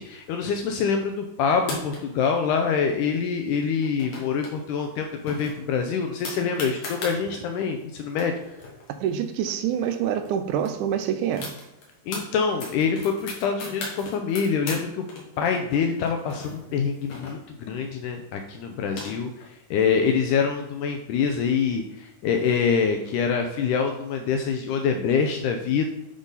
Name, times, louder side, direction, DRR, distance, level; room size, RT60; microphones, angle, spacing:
voice 1, 0.0-8.3 12.1-15.1 15.4-19.3 19.7-25.9, left 6 dB, 80° left, 4 dB, 2.1 m, -25 dB
sound 1, 1.5-2.3 3.8-4.5 4.8-4.9 5.3-7.2 7.8-7.9 8.1-9.9 10.3-10.4 10.6-12.2 12.6-14.8 15.1-17.7 18.5-19.5, left 3 dB, 60° left, 2.8 m, -37 dB
voice 2, 9.0-11.5, right 9 dB, 80° right, 8 dB, 2.1 m, -26 dB
10.0 x 3.7 x 4.0 m, 0.93 s
omnidirectional pair, 3.7 m